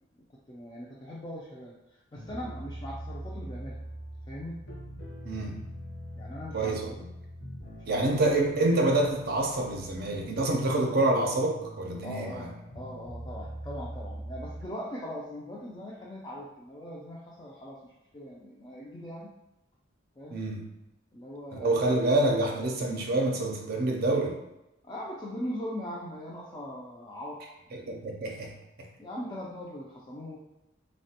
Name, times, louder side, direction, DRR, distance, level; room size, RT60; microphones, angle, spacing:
voice 1, 0.5-3.8 4.3-4.6 6.2-7.0 7.8-8.3 12.0-19.4 20.2-20.4 21.1-22.0 24.8-27.4 29.0-30.4, equal, 20° left, -4 dB, 0.3 m, -40 dB
sound 1, 2.1-14.7, equal, 60° left, 0.7 m, -42 dB
voice 2, 5.2-5.7 6.5-7.1 7.9-12.5 20.3-20.6 21.5-24.4 27.7-28.9, right 2 dB, 55° right, 1 dB, 0.5 m, -27 dB
3.2 x 2.1 x 2.7 m, 0.92 s
head